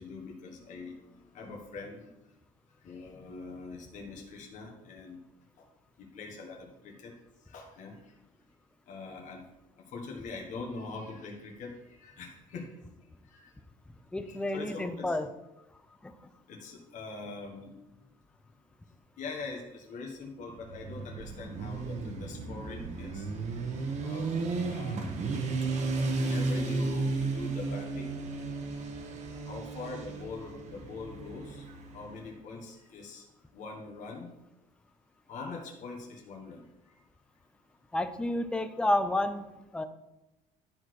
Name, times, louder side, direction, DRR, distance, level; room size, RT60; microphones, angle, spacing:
voice 1, 0.0-2.1 2.8-5.2 5.6-5.7 6.0-7.1 7.5-8.0 8.9-9.4 9.8-12.7 13.2-13.5 14.2-15.2 16.5-17.7 19.2-23.3 24.0-25.2 26.2-28.2 29.5-31.7 31.9-33.2 33.5-34.3 35.3-36.7, left 4 dB, 55° left, 0 dB, 1.5 m, -43 dB
voice 2, 14.1-15.3 16.0-16.1 37.9-39.8, left 1 dB, 5° left, 9 dB, 0.5 m, -30 dB
Motorcycle, 20.5-32.2, right 3 dB, 50° right, 1.1 m, -34 dB
12.0 x 4.2 x 4.7 m, 0.97 s
cardioid pair, 150°, 15 cm